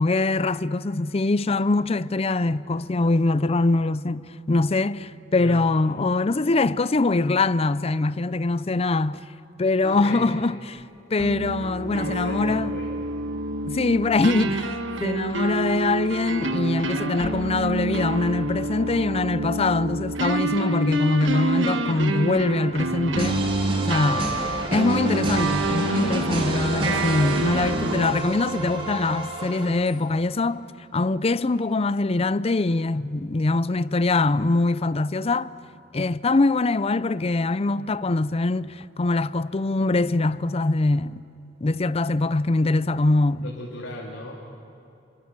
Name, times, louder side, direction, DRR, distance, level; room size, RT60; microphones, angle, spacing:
voice 1, 0.0-9.2 9.6-10.8 11.1-12.7 13.6-23.4 23.9-24.3 24.7-35.5 35.9-41.2 41.6-43.5, left 3 dB, 30° left, 0.5 m, -23 dB
voice 2, 5.4-5.7 9.8-10.2 11.9-12.9 24.3-24.6 26.7-27.2 43.4-44.4, left 1 dB, 85° left, 3.0 m, -37 dB
sound 1, 11.2-28.1, right 2 dB, 85° right, 1.4 m, -27 dB
sound 2, 23.2-30.1, right 1 dB, 30° right, 3.9 m, -31 dB
29.5 x 24.0 x 7.6 m
head